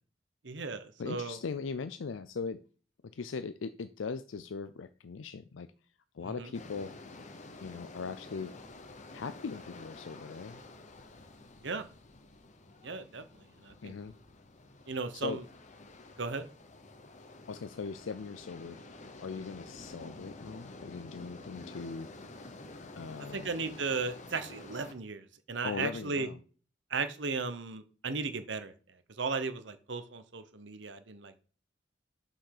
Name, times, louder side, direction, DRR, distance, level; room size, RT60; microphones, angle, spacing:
voice 1, 0.4-1.4 6.4-6.5 11.6-11.8 12.8-13.2 13.6-13.9 14.9-15.4 16.2-16.5 23.3-26.3 26.9-28.7 29.2-31.4, right 4 dB, 65° right, 1.0 m, -36 dB
voice 2, 1.0-2.6 3.0-5.7 6.1-6.9 7.6-8.5 9.1-10.6 13.8-14.1 15.1-15.5 17.5-22.1 23.0-23.5 25.6-26.4, left 5 dB, 85° left, 0.5 m, -40 dB
sound 1, 6.5-24.9, left 2 dB, 40° left, 0.9 m, -50 dB
6.0 x 5.3 x 6.6 m
head